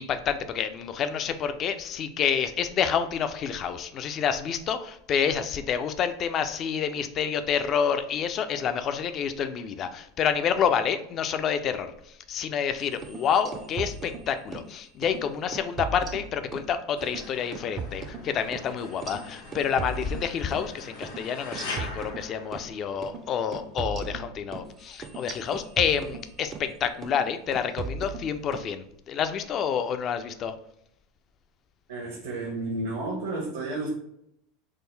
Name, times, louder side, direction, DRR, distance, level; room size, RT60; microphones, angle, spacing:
voice 1, 0.0-11.9 12.3-30.5, left 7 dB, 40° left, 9 dB, 0.3 m, -28 dB
sound 1, 12.9-14.7 15.0-15.2 15.5-16.7 17.0-20.7 21.0-21.2 21.5-22.7 23.0-23.2 23.5-26.7 27.0-27.3 27.5-28.7, right 4 dB, 35° right, 0.4 m, -38 dB
sound 2, 17.0-23.3, left 3 dB, 80° left, 0.8 m, -42 dB
voice 2, 31.9-33.9, right 2 dB, 80° right, -2 dB, 0.8 m, -32 dB
3.6 x 2.1 x 3.2 m, 0.75 s
hypercardioid pair, 95°, 0 cm